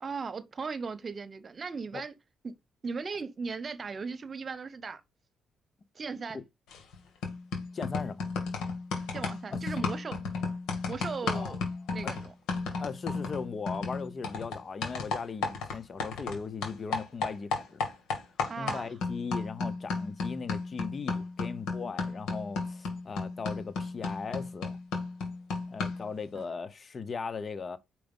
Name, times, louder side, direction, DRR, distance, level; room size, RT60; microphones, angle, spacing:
voice 1, 0.0-2.1 2.4-2.5 2.8-5.0 5.9-6.4 9.1-10.2 10.8-11.6 11.9-12.3 18.5-18.9 26.3-26.5, right 5 dB, 40° right, 1.0 m, -37 dB
sound 1, 6.7-6.9 7.2-16.4 16.6-26.1, left 4 dB, 85° left, 2.3 m, -34 dB
voice 2, 7.7-8.3 9.5-9.6 11.2-11.5 12.0-12.1 12.8-17.9 18.6-24.8 25.7-27.8, left 5 dB, 40° left, 1.0 m, -38 dB
5.0 x 4.7 x 5.4 m
cardioid pair, 90°, 0 cm